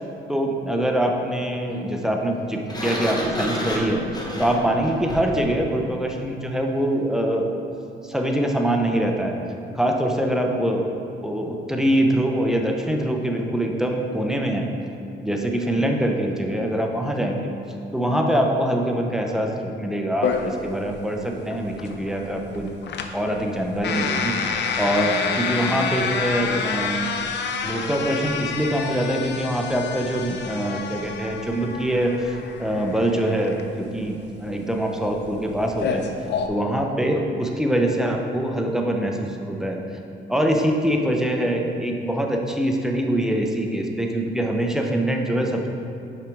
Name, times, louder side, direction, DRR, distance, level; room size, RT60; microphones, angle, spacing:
voice 1, 0.3-4.0 4.4-7.5 8.0-9.4 9.7-10.9 11.2-14.7 15.2-17.5 17.9-22.7 23.1-27.1 27.6-36.1 36.5-39.8 40.3-45.7, right 1 dB, 5° right, 1 dB, 0.7 m, -24 dB
Sliding door, 2.7-5.5, equal, 20° left, 1.1 m, -30 dB
sound 1, 20.2-36.5, left 5 dB, 60° left, 0.6 m, -29 dB
5.9 x 5.0 x 4.6 m, 2.5 s
cardioid pair, 90°, 20 cm